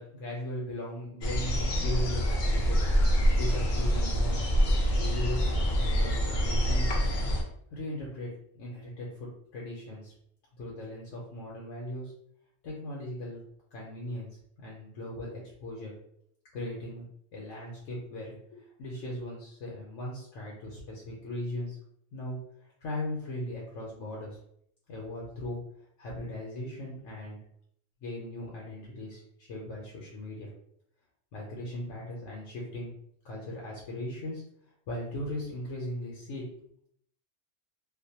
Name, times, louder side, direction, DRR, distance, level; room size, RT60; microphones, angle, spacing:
voice 1, 0.0-2.9 3.4-4.4 4.9-7.3 7.7-10.1 10.6-12.1 12.6-13.4 13.7-14.3 14.6-15.9 16.5-17.1 17.3-21.8 22.1-24.4 24.9-25.6 26.0-27.4 28.0-30.5 31.3-32.9 33.2-34.4 34.9-36.4, left 1 dB, 85° left, -4 dB, 1.0 m, -38 dB
sound 1, 1.2-7.4, equal, 55° left, 0.5 m, -26 dB
2.5 x 2.0 x 2.7 m, 0.69 s
omnidirectional pair, 1.3 m